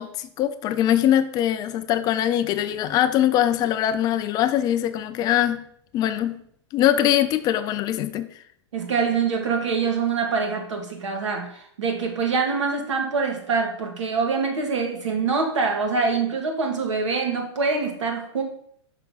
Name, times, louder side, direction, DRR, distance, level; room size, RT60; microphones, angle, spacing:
voice 1, 0.0-5.7 5.9-6.4 6.7-8.3, left 11 dB, 25° left, 0.4 m, -22 dB
voice 2, 8.7-18.4, right 5 dB, 90° right, 1.8 m, -25 dB
5.7 x 3.8 x 5.5 m
hypercardioid pair, 140°, 15 cm